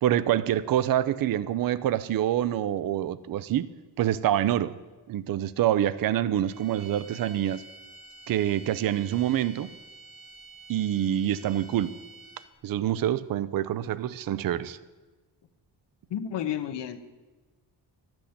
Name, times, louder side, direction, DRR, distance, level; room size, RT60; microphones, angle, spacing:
voice 1, 0.0-3.7 4.0-4.8 5.1-7.6 8.3-9.7 10.7-12.0 12.6-14.8, right 11 dB, 55° right, 16 dB, 0.5 m, -26 dB
sound 1, 6.5-12.7, right 3 dB, 30° right, 1.3 m, -49 dB
voice 2, 16.1-17.0, left 9 dB, 75° left, 9 dB, 1.0 m, -31 dB
13.0 x 6.1 x 8.6 m, 1.2 s
wide cardioid pair, 145°, 42 cm